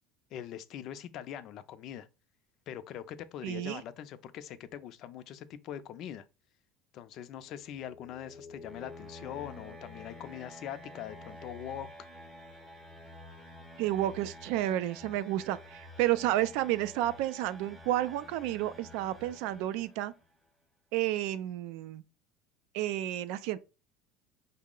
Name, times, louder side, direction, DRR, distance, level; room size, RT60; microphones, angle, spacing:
voice 1, 0.3-2.1 2.7-6.3 6.9-11.9, left 10 dB, 45° left, 0.4 m, -42 dB
voice 2, 3.4-3.8 13.8-20.1 20.9-22.0 22.7-23.6, right 14 dB, 65° right, 0.4 m, -31 dB
sound 1, 7.4-20.3, left 1 dB, 5° right, 0.6 m, -50 dB
5.4 x 2.0 x 3.7 m
cardioid pair, 155°, 0 cm